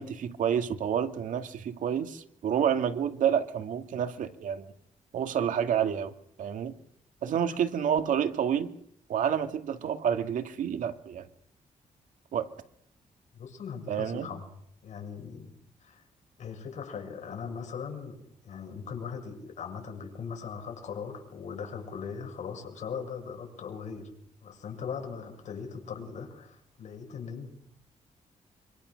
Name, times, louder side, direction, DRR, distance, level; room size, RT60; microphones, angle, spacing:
voice 1, 0.0-4.7 5.1-6.1 6.4-6.8 7.2-8.7 9.1-11.3 12.3-12.5 13.9-14.3, right 8 dB, 90° right, 8 dB, 2.1 m, -29 dB
voice 2, 13.3-14.5 14.8-15.5 15.8-16.0 16.4-24.1 24.4-27.5, left 6 dB, 70° left, 3 dB, 7.0 m, -39 dB
26.0 x 25.5 x 6.5 m, 0.68 s
wide cardioid pair, 145°, 13 cm